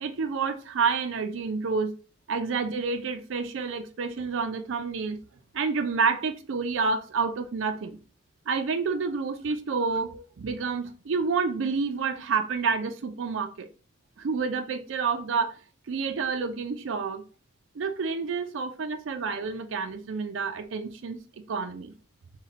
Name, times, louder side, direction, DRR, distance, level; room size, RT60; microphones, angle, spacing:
voice 1, 0.0-1.9 2.3-5.2 5.5-8.0 8.5-13.7 14.2-15.6 15.9-17.2 17.8-21.2 21.5-21.9, right 5 dB, 80° right, 0.4 m, -29 dB
4.0 x 2.2 x 4.0 m
head